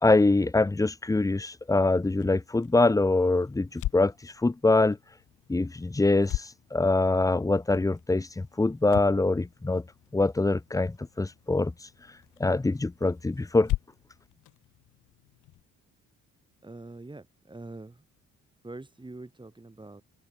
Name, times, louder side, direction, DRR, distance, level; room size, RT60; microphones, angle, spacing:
voice 1, 0.0-5.0 5.5-9.8 10.1-13.7, left 2 dB, 10° left, 0.7 m, -24 dB
sound 1, 2.0-15.6, left 16 dB, 85° left, 1.1 m, -41 dB
voice 2, 16.6-18.1 18.6-20.0, right 2 dB, 15° right, 5.7 m, -44 dB
cardioid pair, 90°, 30 cm